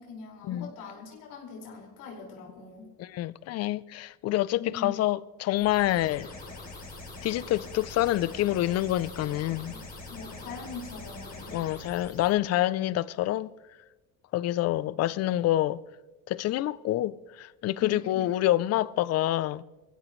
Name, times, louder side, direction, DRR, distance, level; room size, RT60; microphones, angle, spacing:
voice 1, 0.0-2.9 4.6-4.9 9.7-9.8 10.1-11.6 17.8-18.2, left 5 dB, 85° left, 5.3 m, -42 dB
voice 2, 3.0-6.3 7.2-9.7 11.5-13.5 14.3-15.8 16.3-19.6, left 14 dB, 45° left, 0.5 m, -27 dB
sound 1, 5.5-12.3, left 2 dB, 25° left, 3.9 m, -43 dB
25.0 x 16.0 x 3.2 m
cardioid pair, 170°, 35 cm